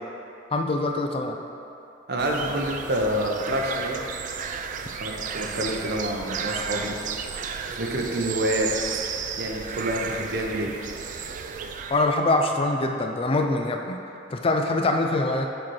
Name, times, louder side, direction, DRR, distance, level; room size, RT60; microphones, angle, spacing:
voice 1, 0.5-1.4 11.9-14.0 14.3-15.5, left 2 dB, 30° left, 4 dB, 0.4 m, -24 dB
voice 2, 2.1-4.0 5.0-6.9 7.7-9.0 9.4-10.7, right 1 dB, 60° right, 0 dB, 0.8 m, -27 dB
sound 1, 2.2-12.2, right 6 dB, 45° right, 0.3 m, -33 dB
7.3 x 4.4 x 4.6 m, 2.8 s
head